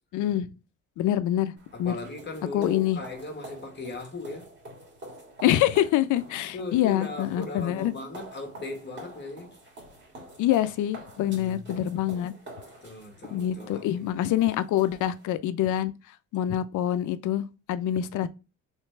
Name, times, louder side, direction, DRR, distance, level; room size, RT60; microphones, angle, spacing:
voice 1, 0.1-0.5 1.0-1.5 1.8-2.0 2.5-3.0 5.4-7.9 10.4-12.3 13.3-15.9 16.3-18.3, left 12 dB, 75° left, 0.5 m, -25 dB
sound 1, 1.6-15.3, right 1 dB, 40° right, 2.0 m, -48 dB
voice 2, 1.7-4.5 6.4-9.6 11.2-12.2 12.8-14.1, left 3 dB, 35° left, 1.5 m, -38 dB
3.2 x 3.1 x 3.2 m
cardioid pair, 90°, 30 cm